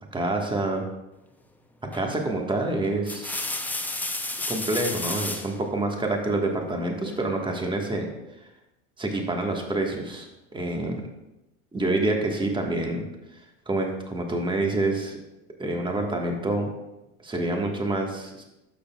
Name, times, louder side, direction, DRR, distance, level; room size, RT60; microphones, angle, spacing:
voice 1, 0.1-0.8 1.9-3.4 4.4-8.1 8.4-8.5 9.0-11.0 11.7-13.1 13.3-13.4 13.7-15.2 15.6-16.7 17.2-18.4, right 2 dB, 10° right, 2 dB, 1.4 m, -27 dB
sound 1, 1.9-2.2 2.8-5.5 7.0-7.7, left 2 dB, 5° left, 0.5 m, -32 dB
11.5 x 6.6 x 2.3 m, 0.95 s
hypercardioid pair, 95°, 40 cm